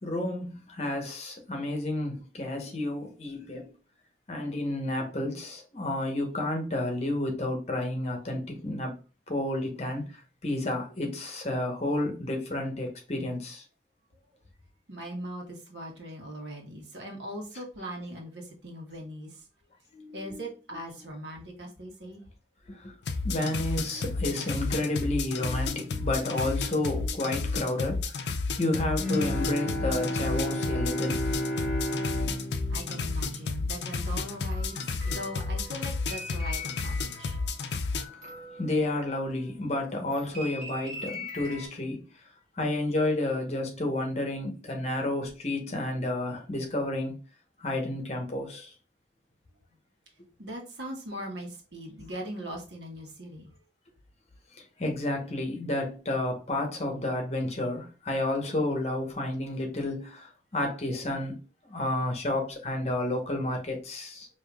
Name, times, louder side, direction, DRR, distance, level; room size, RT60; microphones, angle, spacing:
voice 1, 0.0-3.7 4.3-9.0 9.3-13.6 19.9-20.4 22.7-22.9 23.2-31.2 38.6-42.1 42.6-47.2 47.6-48.7 54.8-64.3, left 1 dB, 40° left, 0.9 m, -31 dB
voice 2, 14.9-19.4 20.1-22.2 32.7-34.8 35.0-37.4 50.4-53.5, equal, 90° right, 1.2 m, -40 dB
sound 1, 23.0-38.0, left 4 dB, 80° left, 0.5 m, -32 dB
Bowed string instrument, 29.0-34.1, equal, 5° left, 1.1 m, -33 dB
sound 2, 34.0-39.6 40.1-41.7, left 2 dB, 45° right, 1.5 m, -43 dB
5.1 x 2.7 x 2.3 m
head